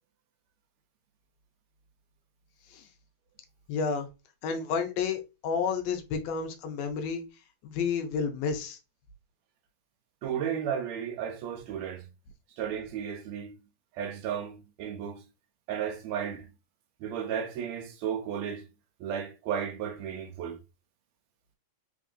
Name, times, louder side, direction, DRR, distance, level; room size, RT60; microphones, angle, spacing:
voice 1, 3.7-4.1 4.4-7.2 7.6-8.8, left 5 dB, 80° left, 1.6 m, -30 dB
voice 2, 10.2-12.1 12.6-13.5 13.9-15.2 15.7-16.5 17.0-18.6 19.0-20.6, right 8 dB, 80° right, 1.8 m, -34 dB
3.9 x 3.6 x 2.5 m
omnidirectional pair, 3.3 m